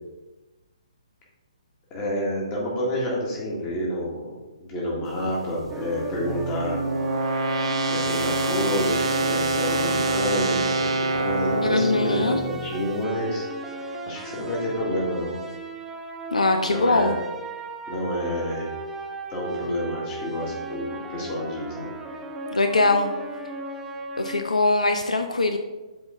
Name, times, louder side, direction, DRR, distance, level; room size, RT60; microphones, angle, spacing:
voice 1, 1.9-4.3 4.6-6.8 7.9-13.4 14.1-15.4 16.6-17.1 17.9-18.7 19.3-20.8 21.1-21.9, equal, 25° left, -4 dB, 2.0 m, -28 dB
sound 1, 5.6-12.8, right 2 dB, 55° right, 0.9 m, -26 dB
sound 2, 5.7-24.4, right 2 dB, 10° right, 0.5 m, -37 dB
voice 2, 11.6-12.4 16.3-17.1 22.5-23.1 24.2-25.6, left 2 dB, 80° left, 6 dB, 0.5 m, -22 dB
7.7 x 3.9 x 3.7 m, 1.2 s
figure-of-eight pair, 135°, 4 cm